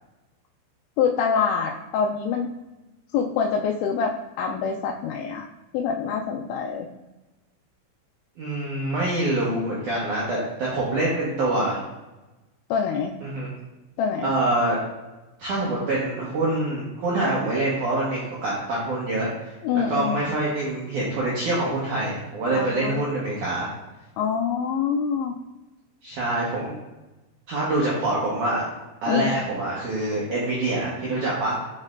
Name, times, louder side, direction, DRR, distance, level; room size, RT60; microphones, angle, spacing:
voice 1, 1.0-2.5 3.1-5.4 5.7-6.9 12.7-13.1 14.0-14.4 19.6-20.2 22.5-23.1 24.2-25.4 29.1-29.5, left 6 dB, 85° left, 0 dB, 2.7 m, -25 dB
voice 2, 8.4-11.8 13.2-13.5 14.2-14.8 15.4-19.5 19.9-23.7 26.0-26.8 27.5-28.6 29.0-31.6, right 2 dB, 90° right, -6 dB, 1.7 m, -25 dB
6.3 x 6.2 x 2.5 m, 1.1 s
omnidirectional pair, 5.3 m